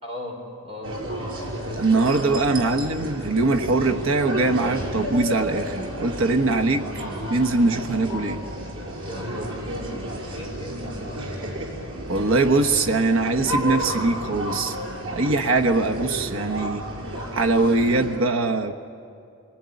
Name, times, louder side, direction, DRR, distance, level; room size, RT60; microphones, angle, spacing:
voice 1, 0.0-0.9 9.1-9.9 10.2-10.9, left 1 dB, 30° right, 0 dB, 5.1 m, -37 dB
sound 1, 0.8-18.2, equal, 90° right, 6.2 m, -32 dB
voice 2, 1.8-6.9 7.3-8.4 12.1-14.8 15.1-16.9 17.3-18.7, right 3 dB, 70° right, 4 dB, 1.1 m, -22 dB
27.5 x 20.5 x 9.6 m, 2.5 s
head